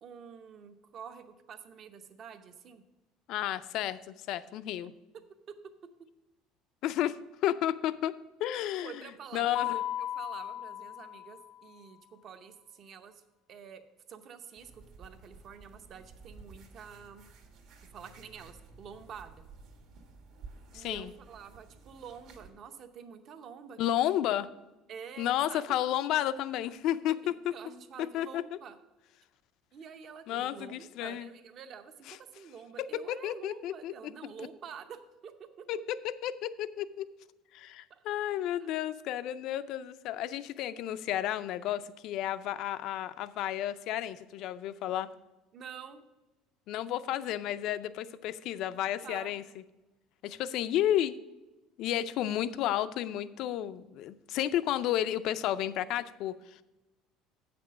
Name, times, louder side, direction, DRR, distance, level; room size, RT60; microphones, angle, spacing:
voice 1, 0.0-2.8 8.8-13.2 13.5-13.8 14.1-17.3 17.9-19.4 20.7-24.0 24.9-25.8 27.2-28.8 29.7-35.8 37.9-38.0 38.6-38.7 45.5-46.0 49.0-49.3, right 7 dB, 35° right, 9 dB, 0.7 m, -48 dB
voice 2, 3.3-4.9 6.8-8.1 8.4-9.0 9.3-9.8 20.7-21.1 23.8-24.5 25.2-27.5 28.0-28.6 30.3-31.3 32.1-32.2 32.8-33.9 35.7-37.1 37.5-45.1 46.7-49.4 50.2-51.2 51.8-56.6, left 12 dB, 50° left, 14 dB, 0.4 m, -32 dB
Mallet percussion, 9.5-11.6, left 13 dB, 80° left, 0.7 m, -36 dB
sound 1, 14.6-22.5, right 4 dB, 55° right, 1.5 m, -53 dB
8.3 x 5.9 x 6.2 m, 1.1 s
cardioid pair, 170°, 0 cm